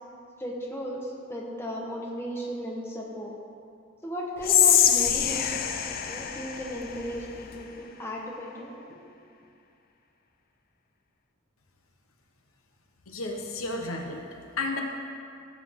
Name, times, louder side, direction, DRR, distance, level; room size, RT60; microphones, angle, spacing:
voice 1, 0.4-3.3 4.0-9.1, equal, 10° left, -2 dB, 1.2 m, -36 dB
Whispering, 4.4-7.6, left 9 dB, 45° left, 0.5 m, -24 dB
voice 2, 13.1-14.2 14.6-14.8, left 2 dB, 80° left, 2 dB, 1.1 m, -32 dB
15.5 x 7.5 x 3.7 m, 2.5 s
head